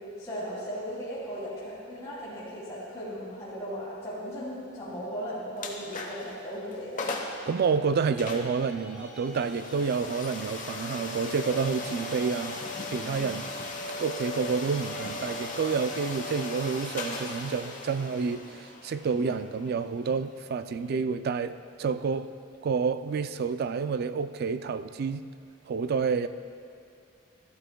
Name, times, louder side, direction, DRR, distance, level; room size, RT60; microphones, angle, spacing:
voice 1, 0.2-7.0 13.0-13.3, equal, 15° left, -12 dB, 2.6 m, -37 dB
sound 1, 5.6-6.3 6.7-6.8 7.0-7.4 8.2-20.9, left 2 dB, 40° left, 0.9 m, -38 dB
voice 2, 7.5-12.6 12.9-13.5 14.0-22.3 22.6-25.2 25.7-26.3, right 5 dB, 50° right, 12 dB, 0.3 m, -29 dB
sound 2, 7.9-10.7 11.4-14.2 14.6-17.6, left 1 dB, 5° right, 1.9 m, -49 dB
13.5 x 12.5 x 2.2 m, 2.5 s
head